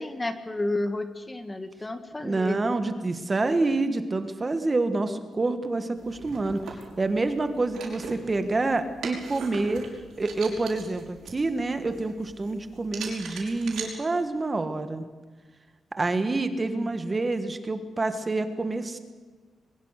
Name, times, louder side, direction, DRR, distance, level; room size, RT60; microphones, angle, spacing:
voice 1, 0.0-2.6 16.6-16.9, left 2 dB, 15° left, 9 dB, 1.7 m, -31 dB
voice 2, 2.2-6.6 7.0-9.8 10.2-15.0 16.0-19.0, right 3 dB, 25° right, 9 dB, 1.6 m, -27 dB
sound 1, 6.0-13.9, right 5 dB, 85° right, 6.2 m, -42 dB
22.5 x 21.0 x 6.6 m, 1.4 s
wide cardioid pair, 130°, 0 cm